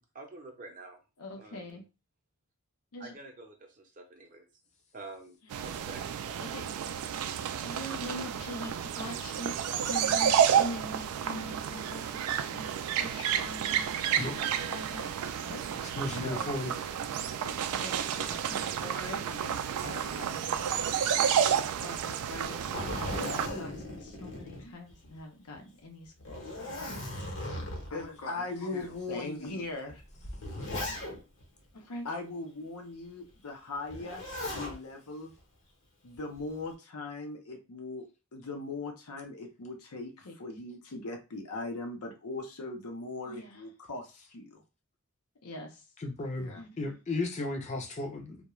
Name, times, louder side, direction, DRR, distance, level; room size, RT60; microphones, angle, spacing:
voice 1, 0.0-1.0 1.4-1.8 3.0-4.5 4.9-6.0, right 3 dB, 35° right, 3 dB, 0.6 m, -48 dB
voice 2, 1.2-1.8 2.9-3.2 5.4-5.5 6.4-6.7 7.6-9.6 9.8-12.2 12.5-15.1 15.4-15.8 16.1-16.9 17.4-20.5 21.8-26.9 27.5-30.0 30.6-31.0 31.7-35.3 36.0-38.0 38.3-44.6 45.4-45.8 46.4-47.0, left 2 dB, 90° left, 3 dB, 0.7 m, -41 dB
sound 1, 5.5-23.5, right 8 dB, 80° right, 0.3 m, -31 dB
voice 3, 15.8-16.7 46.0-48.4, left 2 dB, 30° left, 3 dB, 0.5 m, -35 dB
Zipper (clothing), 22.3-25.2 25.5-25.6 26.2-28.0 28.8-28.9 29.9-31.4 33.9-34.8 36.1-36.6, left 1 dB, 60° left, 0.9 m, -38 dB
2.3 x 2.1 x 3.0 m, 0.30 s
head